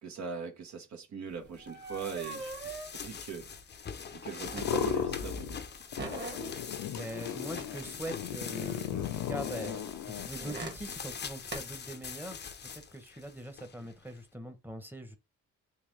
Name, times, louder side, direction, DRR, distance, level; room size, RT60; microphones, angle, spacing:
voice 1, 0.0-3.5 4.1-5.6, right 6 dB, 70° right, 1.1 m, -41 dB
sound 1, 1.3-5.2 5.5-8.7 9.7-11.6, right 3 dB, 35° right, 1.5 m, -43 dB
sound 2, 1.6-14.2, left 6 dB, 35° left, 0.6 m, -44 dB
sound 3, 4.4-5.7 5.9-10.3, left 8 dB, 80° left, 0.6 m, -36 dB
voice 2, 6.9-12.4 12.7-15.2, right 1 dB, 5° right, 0.9 m, -42 dB
3.7 x 3.0 x 3.1 m
cardioid pair, 90°, 30 cm